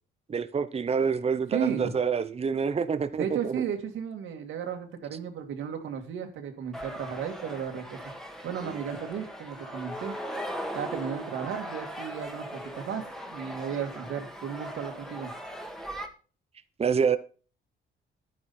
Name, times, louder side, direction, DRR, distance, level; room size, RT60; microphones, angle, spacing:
voice 1, 0.3-3.5 8.6-8.8 16.8-17.2, right 6 dB, 30° right, 0.8 m, -27 dB
voice 2, 1.5-1.9 3.2-8.0 8.4-10.1 10.7-12.5 12.7-15.3, right 8 dB, 85° right, 2.4 m, -34 dB
sound 1, 6.7-16.1, equal, ahead, 1.8 m, -39 dB
11.0 x 9.6 x 4.3 m
cardioid pair, 90°, 20 cm